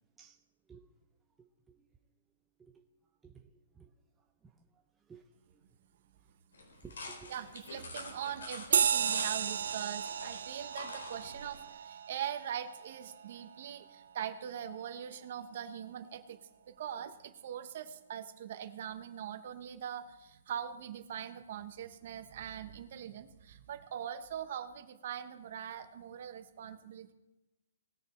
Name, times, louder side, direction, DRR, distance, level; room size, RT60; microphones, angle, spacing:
voice 1, 3.2-3.9 4.4-4.5 5.1-5.2 5.5-5.6 6.8-7.3, right 6 dB, 10° right, 0.6 m, -54 dB
sound 1, 6.5-11.7, left 2 dB, 85° left, 3.8 m, -47 dB
voice 2, 7.3-16.4 16.7-27.1, right 9 dB, 45° right, 1.0 m, -42 dB
sound 2, 8.7-13.6, right 7 dB, 65° right, 0.3 m, -34 dB
19.5 x 6.8 x 4.4 m
hypercardioid pair, 170°, 0 cm